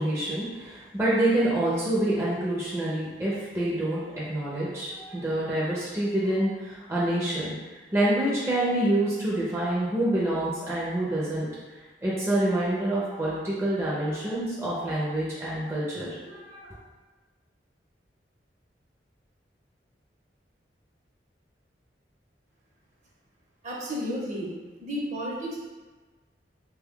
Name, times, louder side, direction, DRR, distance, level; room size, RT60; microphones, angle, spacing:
voice 1, 0.0-7.5 7.9-11.5 12.0-16.7, right 1 dB, 15° right, -8 dB, 0.5 m, -27 dB
voice 2, 23.6-24.5 24.8-25.6, equal, 45° right, -5 dB, 0.8 m, -32 dB
3.2 x 2.3 x 3.6 m, 1.3 s
head